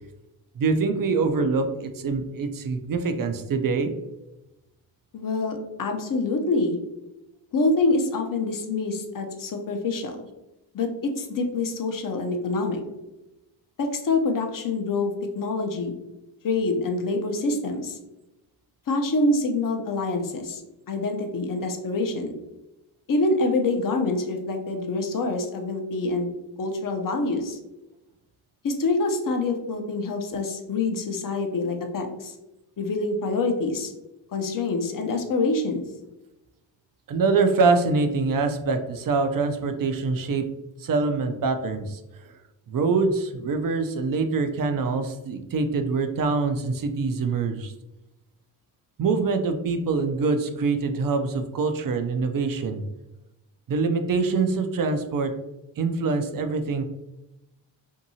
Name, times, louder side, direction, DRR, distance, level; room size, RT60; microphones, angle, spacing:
voice 1, 0.6-3.9 37.1-40.5 40.8-42.4 42.7-47.7 49.0-52.8 53.7-55.3 55.8-56.8, right 4 dB, 45° right, 7 dB, 0.5 m, -24 dB
voice 2, 5.1-6.8 7.5-10.2 10.7-10.9 11.2-12.8 13.8-16.0 16.4-18.0 18.9-20.6 20.9-22.3 23.1-26.3 26.6-27.6 28.6-32.3 32.8-33.9 34.3-35.8, left 3 dB, 40° left, 4 dB, 0.7 m, -26 dB
2.7 x 2.6 x 2.7 m, 0.96 s
supercardioid pair, 45°, 50 cm